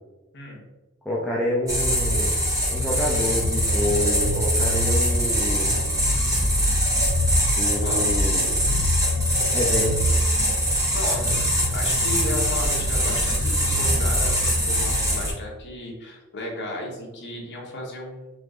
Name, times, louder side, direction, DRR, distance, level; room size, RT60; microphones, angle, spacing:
voice 1, 1.1-2.3 2.7-5.8 7.6-8.5 9.5-10.0, left 1 dB, 5° left, -5 dB, 0.6 m, -27 dB
sound 1, 1.7-15.3, equal, 15° right, 1.5 m, -22 dB
voice 2, 7.8-8.1 10.9-18.3, left 1 dB, 50° left, -2 dB, 1.3 m, -34 dB
4.8 x 2.6 x 3.7 m, 1.1 s
head